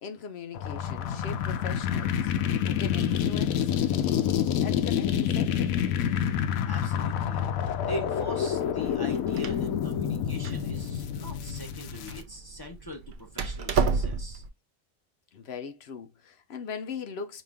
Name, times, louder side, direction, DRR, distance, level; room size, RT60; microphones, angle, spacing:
voice 1, 0.0-2.3 2.7-4.3 4.6-6.0 15.3-17.4, left 6 dB, 60° left, 0.7 m, -40 dB
sound 1, 0.5-12.2, left 9 dB, 85° left, 1.0 m, -28 dB
voice 2, 6.6-7.5 7.9-14.4, equal, 30° left, 0.4 m, -42 dB
Door, 8.9-14.5, right 5 dB, 75° right, 0.4 m, -32 dB
5.1 x 2.5 x 3.3 m
omnidirectional pair, 1.4 m